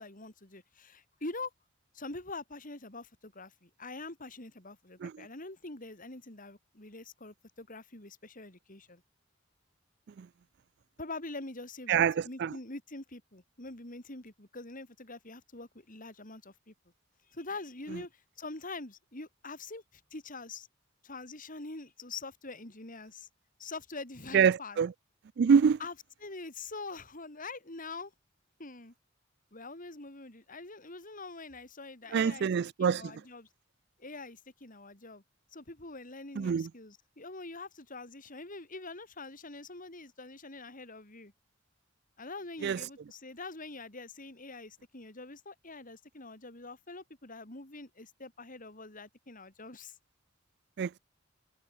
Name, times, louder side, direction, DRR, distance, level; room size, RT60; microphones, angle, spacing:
voice 1, 0.0-1.5 1.9-9.0 11.0-16.7 17.3-20.7 21.0-23.3 23.6-24.8 25.8-25.9 26.2-28.1 28.6-28.9 29.5-32.5 32.8-33.5 34.0-35.2 35.5-41.3 42.2-49.9, left 3 dB, 45° left, 4.1 m, -44 dB
voice 2, 11.9-12.6 24.3-24.9 25.4-25.8 32.1-33.2 36.4-36.7 42.6-42.8 50.8-51.0, right 7 dB, 60° right, 0.4 m, -26 dB
head